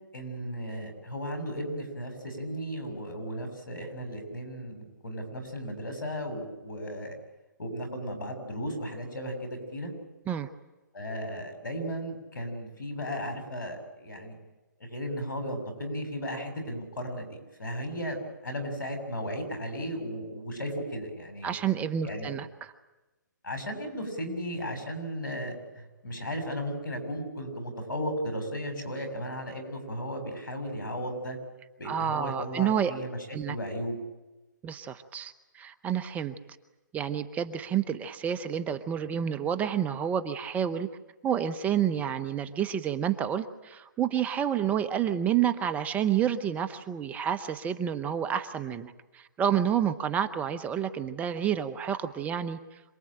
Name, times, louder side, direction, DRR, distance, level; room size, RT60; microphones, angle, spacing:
voice 1, 0.1-7.2 7.6-9.9 10.9-14.4 14.8-18.2 18.4-21.6 22.0-22.3 23.4-31.4 31.8-33.2 33.5-34.0, equal, 80° left, 6 dB, 7.5 m, -35 dB
voice 2, 21.4-22.7 31.8-32.9 33.3-33.6 34.6-36.4 36.9-40.9 41.2-52.6, right 9 dB, 15° right, 11 dB, 0.9 m, -29 dB
26.5 x 20.5 x 8.9 m, 1.1 s
hypercardioid pair, 140°, 10 cm